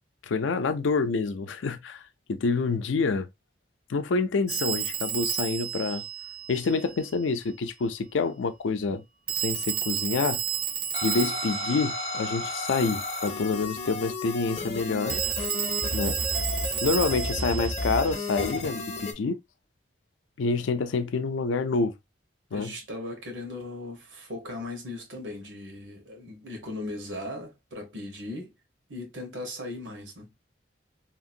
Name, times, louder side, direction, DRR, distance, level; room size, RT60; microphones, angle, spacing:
voice 1, 0.2-2.0 2.3-3.3 3.9-6.0 6.5-9.0 9.3-10.4 11.0-15.2 15.9-16.3 16.8-19.4 20.4-21.9 22.5-22.8, left 4 dB, 90° left, 0.4 m, -27 dB
Telephone, 4.5-7.1 9.3-12.9 15.1-18.6, right 9 dB, 50° right, 0.6 m, -32 dB
sound 1, 10.9-19.1, left 2 dB, 35° left, 0.5 m, -33 dB
voice 2, 22.5-28.5 28.9-30.3, left 2 dB, 90° right, 1.2 m, -38 dB
2.9 x 2.5 x 2.7 m
head